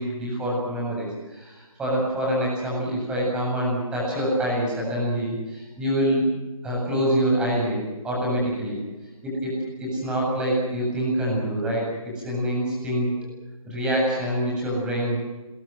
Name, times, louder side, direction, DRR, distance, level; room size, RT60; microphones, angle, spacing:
voice 1, 0.0-6.3 6.6-8.8 9.2-13.1 13.7-15.2, equal, 5° right, -3 dB, 7.9 m, -25 dB
26.5 x 23.0 x 7.8 m, 1.2 s
figure-of-eight pair, 160°, 18 cm